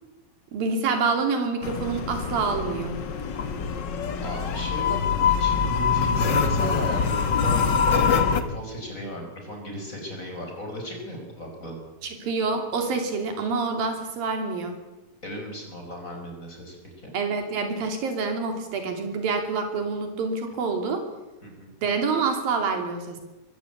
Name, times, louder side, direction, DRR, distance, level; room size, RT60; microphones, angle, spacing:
voice 1, 0.5-3.0 12.0-14.8 17.1-21.0 21.8-23.2, right 4 dB, 85° right, 5 dB, 4.7 m, -27 dB
sound 1, 1.6-8.4, left 6 dB, 60° left, 1.1 m, -24 dB
voice 2, 4.2-11.8 15.2-17.1 21.4-21.7, left 1 dB, 20° left, 2 dB, 5.3 m, -36 dB
23.0 x 15.5 x 8.7 m, 1.1 s
omnidirectional pair, 4.0 m